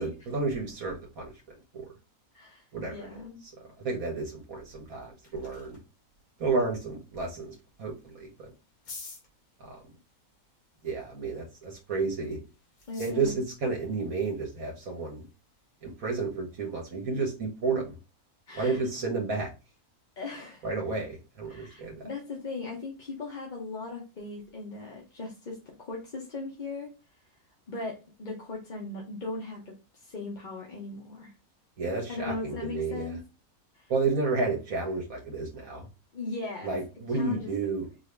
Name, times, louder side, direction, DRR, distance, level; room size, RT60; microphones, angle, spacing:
voice 1, 0.0-1.8 2.7-3.0 3.4-3.5 3.8-5.8 6.4-8.5 9.6-9.8 10.8-12.4 13.0-15.3 15.8-18.0 18.5-19.5 20.6-22.1 31.8-33.2 33.9-35.9 36.6-37.9, right 4 dB, 70° right, 0 dB, 1.5 m, -31 dB
voice 2, 2.3-3.4 12.9-13.4 18.5-18.8 20.2-20.7 21.5-26.9 27.7-31.3 32.1-33.2 33.7-33.9 36.1-36.7 37.1-37.5, left 3 dB, 35° left, -2 dB, 0.9 m, -38 dB
sound 1, 4.8-17.3, left 3 dB, 75° left, 2.0 m, -54 dB
4.6 x 2.7 x 3.3 m, 0.30 s
omnidirectional pair, 1.6 m